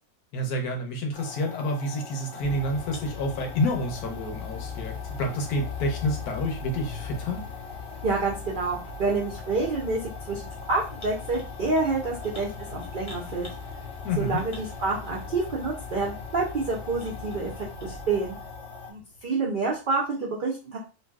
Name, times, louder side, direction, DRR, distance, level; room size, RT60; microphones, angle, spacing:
voice 1, 0.3-7.4 14.0-14.4, left 1 dB, 85° left, 2 dB, 1.3 m, -29 dB
sound 1, 1.1-18.9, left 4 dB, 25° left, 0.7 m, -42 dB
sound 2, 2.4-19.6, left 5 dB, 60° left, 0.6 m, -40 dB
voice 2, 8.0-10.4 10.7-13.5 14.2-18.4 18.9-20.8, right 3 dB, 70° right, -3 dB, 0.5 m, -28 dB
3.1 x 2.6 x 2.3 m, 0.32 s
omnidirectional pair, 1.6 m